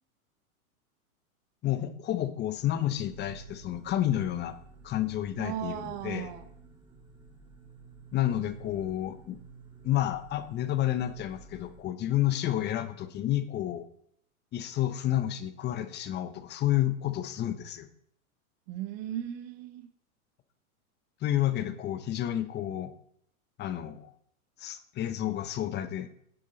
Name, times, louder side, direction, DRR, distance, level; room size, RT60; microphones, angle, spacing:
voice 1, 1.6-4.5 4.8-6.3 8.1-9.4 9.8-13.9 14.5-17.9 21.2-22.9 23.6-24.1 24.6-26.1, left 12 dB, 25° left, 12 dB, 0.8 m, -30 dB
sound 1, 2.5-11.8, right 3 dB, 10° right, 1.5 m, -53 dB
voice 2, 5.4-6.4 18.7-19.9, right 11 dB, 45° right, 8 dB, 1.2 m, -36 dB
9.9 x 8.3 x 4.0 m, 0.67 s
hypercardioid pair, 120°, 44 cm